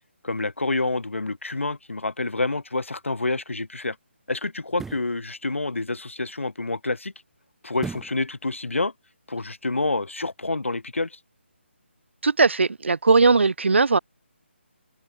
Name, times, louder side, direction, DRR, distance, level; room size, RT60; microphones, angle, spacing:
voice 1, 0.2-4.0 4.3-7.1 7.6-8.9 9.3-11.2, left 2 dB, 85° left, 6.5 m, -28 dB
sound 1, 4.7-5.2 7.8-8.2 8.7-8.8, right 4 dB, 5° right, 1.4 m, -36 dB
voice 2, 12.2-14.0, right 4 dB, 65° right, 2.3 m, -19 dB
figure-of-eight pair, 155°, 7 cm